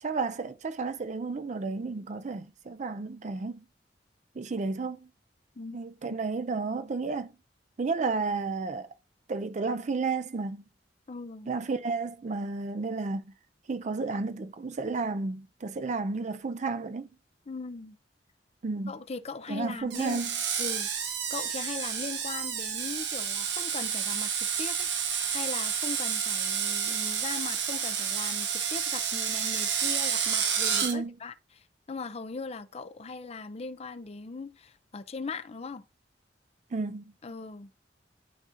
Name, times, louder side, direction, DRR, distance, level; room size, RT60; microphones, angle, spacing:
voice 1, 0.0-3.7 4.4-5.1 5.7-7.3 7.8-8.9 9.3-10.6 11.5-13.3 13.7-17.1 18.6-18.9 19.5-20.3 30.8-31.1 36.7-37.0, right 4 dB, 40° right, 0.4 m, -32 dB
voice 2, 11.1-11.5 17.5-18.0 18.9-20.2 20.6-24.9 25.3-35.8 37.2-37.8, left 4 dB, 35° left, 0.5 m, -39 dB
Screech, 19.9-30.9, right 7 dB, 80° right, 1.1 m, -30 dB
11.5 x 4.1 x 2.5 m
head